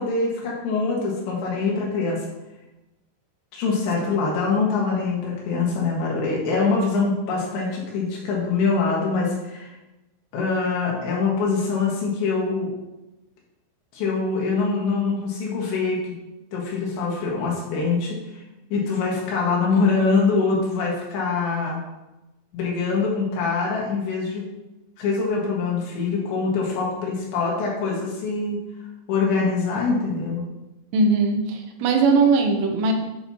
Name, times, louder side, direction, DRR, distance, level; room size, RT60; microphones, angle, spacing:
voice 1, 0.0-2.2 3.5-9.7 10.3-12.7 13.9-16.2 16.5-18.4 18.7-21.8 22.5-24.4 25.0-28.6 29.1-30.5, left 4 dB, 85° left, -3 dB, 3.9 m, -24 dB
voice 2, 30.9-32.9, right 4 dB, 85° right, 4 dB, 3.2 m, -19 dB
9.1 x 6.2 x 2.9 m, 1.0 s
omnidirectional pair, 5.0 m